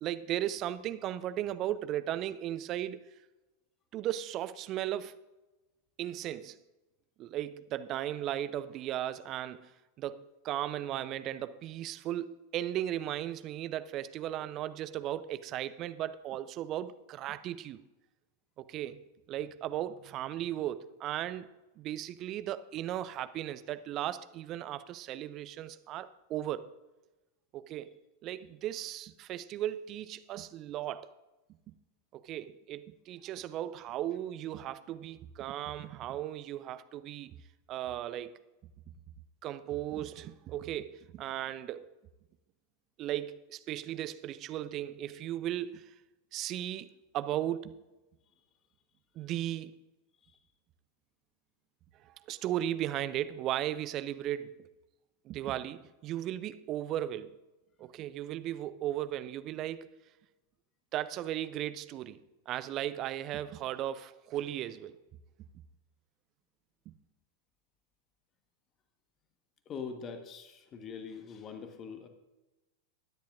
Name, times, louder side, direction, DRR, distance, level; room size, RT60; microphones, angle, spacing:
voice 1, 0.0-3.0 3.9-5.2 6.0-6.6 7.2-9.7 10.0-17.8 18.6-19.0 19.3-21.5 21.8-26.7 27.5-27.9 28.2-31.1 31.7-31.8 32.1-37.4 37.7-38.4 39.4-41.9 43.0-45.9 46.3-47.8 49.2-49.8 52.0-54.6 55.2-57.4 57.8-59.9 60.9-62.2 62.5-65.0 66.9-67.0, right 12 dB, 35° right, 0.5 m, -36 dB
voice 2, 69.7-72.1, left 6 dB, 30° left, 1.3 m, -43 dB
21.0 x 10.0 x 2.5 m
figure-of-eight pair, 90°, 0 cm